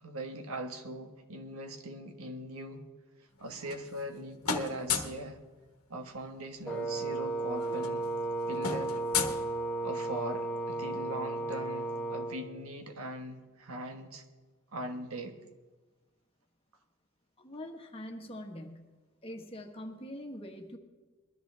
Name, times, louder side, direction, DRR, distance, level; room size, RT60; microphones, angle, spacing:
voice 1, 0.0-2.8 3.4-5.4 5.9-8.1 8.5-9.0 9.8-14.2 14.7-15.4, right 1 dB, 80° right, 6 dB, 1.4 m, -40 dB
sound 1, 3.4-4.2 4.4-5.3 6.6-6.7 7.0-7.2 7.5-10.1, left 6 dB, 85° left, 1.3 m, -35 dB
Wind instrument woodwind instrument, 6.7-12.4, right 2 dB, 5° left, 1.3 m, -34 dB
voice 2, 17.4-18.9 19.2-20.8, left 1 dB, 25° left, 3 dB, 1.5 m, -43 dB
21.5 x 13.5 x 3.4 m, 1.3 s
head